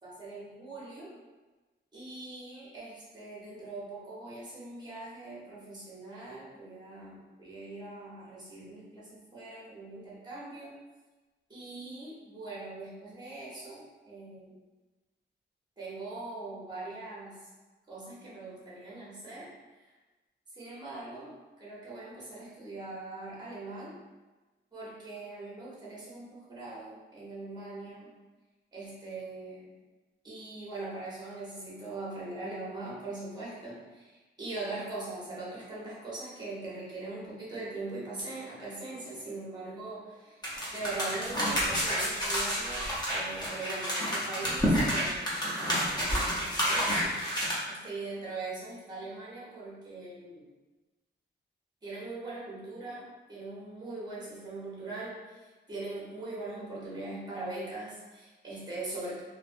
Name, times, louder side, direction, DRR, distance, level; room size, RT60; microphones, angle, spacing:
voice 1, 0.0-1.1 1.9-10.7 11.5-14.6 15.8-17.3 17.9-19.5 19.8-19.9 20.5-21.3 21.6-23.9 24.7-28.1 28.7-29.7 30.2-40.4 40.7-50.4 51.8-59.2, right 2 dB, 20° right, -7 dB, 0.9 m, -41 dB
sound 1, 40.4-47.5, equal, 20° left, 0.7 m, -29 dB
3.1 x 2.2 x 2.5 m, 1.2 s
wide cardioid pair, 170°, 19 cm